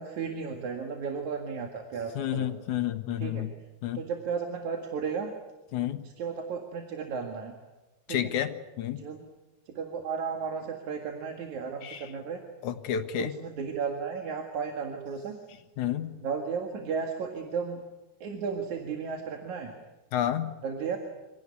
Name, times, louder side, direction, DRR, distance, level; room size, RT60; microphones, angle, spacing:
voice 1, 0.0-2.5 3.2-3.4 4.0-5.3 6.2-7.5 8.1-8.3 9.0-9.2 9.8-12.4 13.2-15.4 16.2-17.8 18.2-19.7 20.6-21.0, right 5 dB, 75° right, 3 dB, 3.4 m, -34 dB
voice 2, 2.2-3.5 3.8-4.0 5.7-6.0 8.1-9.0 11.8-12.1 12.6-13.4 15.8-16.1 20.1-20.5, left 10 dB, 85° left, 7 dB, 2.6 m, -30 dB
26.5 x 17.5 x 9.7 m, 1.1 s
omnidirectional pair, 3.4 m